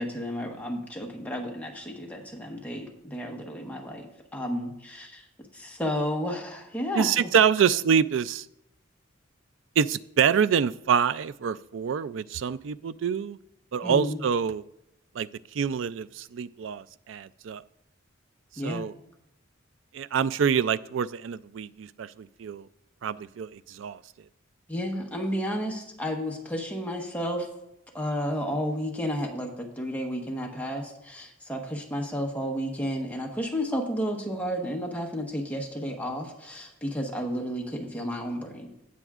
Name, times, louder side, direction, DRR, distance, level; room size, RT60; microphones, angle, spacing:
voice 1, 0.0-5.2 5.5-7.3 13.8-14.2 18.6-18.9 24.7-27.5 27.9-38.7, equal, 10° left, 0 dB, 1.1 m, -32 dB
voice 2, 7.0-8.5 9.8-13.4 13.7-14.6 15.2-15.3 15.5-17.6 18.6-18.9 19.9-22.7 23.0-24.0, right 7 dB, 65° right, 16 dB, 0.4 m, -26 dB
17.0 x 7.0 x 2.4 m, 0.83 s
head